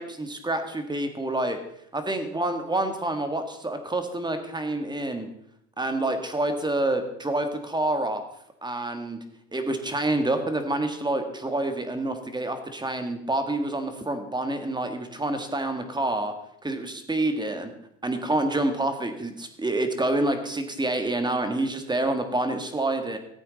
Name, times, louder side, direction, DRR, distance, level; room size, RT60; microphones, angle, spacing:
voice 1, 0.0-1.6 1.9-5.3 5.8-8.2 8.6-9.2 9.5-16.3 16.6-17.7 18.0-23.2, right 2 dB, 10° right, 7 dB, 1.6 m, -27 dB
14.5 x 8.4 x 4.1 m, 0.74 s
supercardioid pair, 100°, 34 cm